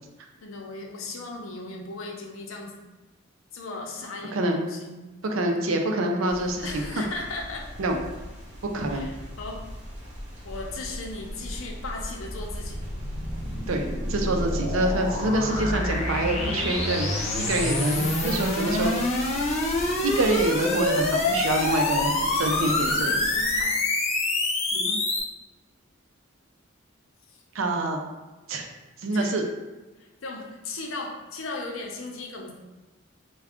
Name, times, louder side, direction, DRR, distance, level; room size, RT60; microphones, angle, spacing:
voice 1, 0.4-2.8 3.5-5.0 6.6-7.7 8.9-9.6 10.4-12.8 21.5-22.0 22.3-23.8 27.3-27.4 29.1-29.4 30.0-32.5, left 2 dB, 90° left, 1 dB, 0.6 m, -37 dB
voice 2, 4.3-4.6 5.2-7.0 7.8-8.0 8.7-9.1 13.7-18.9 20.0-22.1 22.4-23.2 24.7-25.0 27.5-28.0 28.5-28.7 29.0-29.4, right 1 dB, 90° right, 3 dB, 0.5 m, -26 dB
sound 1, 6.3-23.6, equal, 40° right, 0.9 m, -40 dB
sound 2, 11.7-25.2, left 2 dB, 35° left, 0.5 m, -27 dB
3.5 x 2.3 x 3.5 m, 1.1 s
head